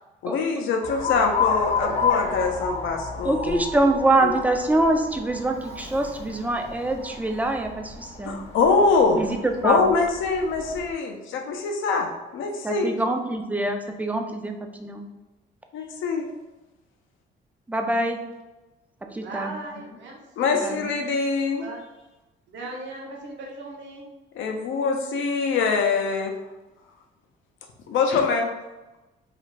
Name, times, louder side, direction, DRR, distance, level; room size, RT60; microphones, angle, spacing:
voice 1, 0.2-3.7 4.2-4.3 8.2-9.2 9.6-12.9 15.7-16.3 19.8-19.9 20.4-21.7 24.3-26.4 27.9-28.5, left 4 dB, 75° left, 3 dB, 0.5 m, -24 dB
Alarm, 0.8-10.9, left 5 dB, 30° left, 0.6 m, -31 dB
voice 2, 3.2-8.4 9.2-9.8 12.6-15.1 17.7-18.2 19.1-19.5 20.6-20.9, right 2 dB, 10° right, 4 dB, 0.3 m, -24 dB
voice 3, 19.2-20.8 21.6-21.8 22.5-24.1, right 2 dB, 70° right, -1 dB, 0.8 m, -38 dB
2.5 x 2.4 x 3.0 m, 1.1 s
cardioid pair, 90°, 20 cm